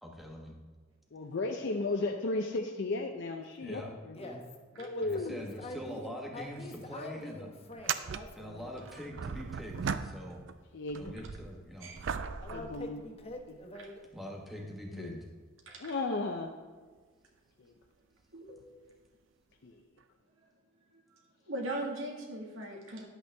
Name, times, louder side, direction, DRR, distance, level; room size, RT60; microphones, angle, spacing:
voice 1, 0.0-0.5 3.6-4.4 5.0-7.5 8.3-10.4 11.0-11.9 14.1-15.2, equal, ahead, -1 dB, 1.2 m, -43 dB
voice 2, 1.1-4.2 4.8-5.5 10.7-11.1 12.5-13.0 14.9-15.2 15.8-16.5 17.6-17.7 19.6-19.7, left 2 dB, 60° left, 3 dB, 0.6 m, -35 dB
voice 3, 4.7-8.8 12.4-14.1, left 2 dB, 30° left, 3 dB, 1.1 m, -45 dB
sound 1, 6.4-6.5 6.8-6.9 7.7-10.6 10.9-13.6 14.3-14.4 18.5-18.6 20.0-20.1, right 6 dB, 65° right, 0.4 m, -39 dB
voice 4, 18.3-18.8 20.9-21.0 21.5-23.0, right 1 dB, 90° right, 0 dB, 1.8 m, -39 dB
10.0 x 8.1 x 3.4 m, 1.5 s
head